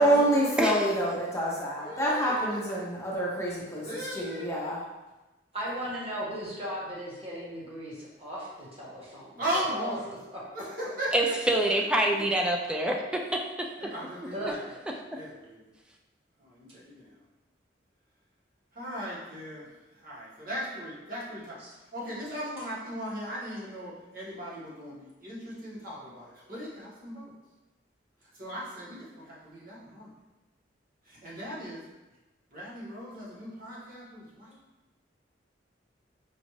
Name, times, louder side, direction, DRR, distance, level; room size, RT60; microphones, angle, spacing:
voice 1, 0.0-4.8, right 1 dB, 15° left, -4 dB, 0.7 m, -27 dB
voice 2, 1.8-2.9 3.7-4.5 9.4-10.1 10.5-11.4 12.1-12.2 13.8-14.8 15.1-15.7 16.4-17.2 18.7-27.3 28.3-30.1 31.0-31.8 32.5-34.6, equal, 50° right, -7 dB, 1.4 m, -38 dB
voice 3, 5.5-9.4 9.7-9.9 14.3-14.6 21.6-21.7, equal, 35° right, -7 dB, 1.3 m, -36 dB
voice 4, 11.1-13.7 14.5-14.6, right 1 dB, 5° right, 0 dB, 0.3 m, -26 dB
5.1 x 2.5 x 3.1 m, 1.1 s
head